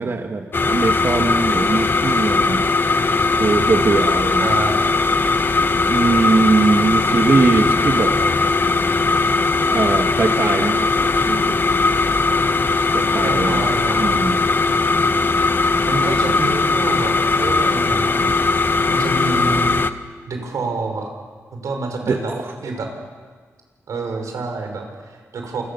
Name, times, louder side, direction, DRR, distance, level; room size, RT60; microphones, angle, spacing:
voice 1, 0.0-2.8 3.4-4.5 5.9-8.1 9.7-10.9 11.2-11.6 12.9-13.7 14.0-14.4 22.0-22.5, right 4 dB, 50° right, 4 dB, 1.7 m, -21 dB
sound 1, 0.5-19.9, left 3 dB, 40° left, 1.3 m, -19 dB
voice 2, 4.4-4.9 13.2-14.3 15.8-18.3 18.9-19.8 20.3-21.1 21.5-22.3 22.6-22.9 23.9-25.6, right 3 dB, 90° right, 3 dB, 5.4 m, -27 dB
28.0 x 24.0 x 7.0 m, 1.5 s
cardioid pair, 85°, 5 cm